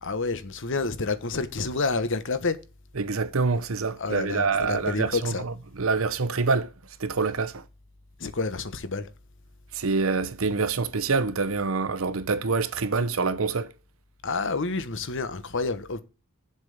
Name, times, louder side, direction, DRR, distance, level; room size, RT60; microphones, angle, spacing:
voice 1, 0.0-2.6 4.0-5.4 8.2-9.1 14.2-16.0, left 3 dB, 60° left, 1.2 m, -29 dB
voice 2, 3.0-6.7 7.0-7.6 9.7-13.7, right 4 dB, 70° right, 0.9 m, -26 dB
7.4 x 5.6 x 6.5 m
head